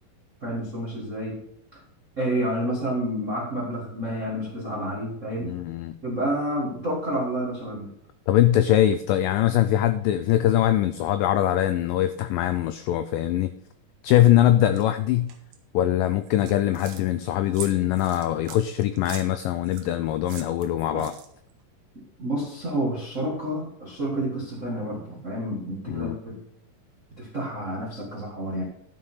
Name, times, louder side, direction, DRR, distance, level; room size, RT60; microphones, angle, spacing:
voice 1, 0.4-1.4 2.2-5.5 6.0-7.9 20.9-21.1 22.2-26.4 27.2-28.6, right 1 dB, 50° right, -2 dB, 0.8 m, -29 dB
voice 2, 5.4-6.0 8.3-13.5 14.0-15.3 15.7-21.1 25.9-26.2, left 12 dB, 85° left, 11 dB, 1.9 m, -22 dB
sound 1, 14.7-14.8 15.3-15.6 16.2-17.0 17.5-19.9 20.3-21.5, right 8 dB, 65° right, 2.3 m, -41 dB
11.5 x 5.8 x 5.5 m, 0.73 s
omnidirectional pair, 4.4 m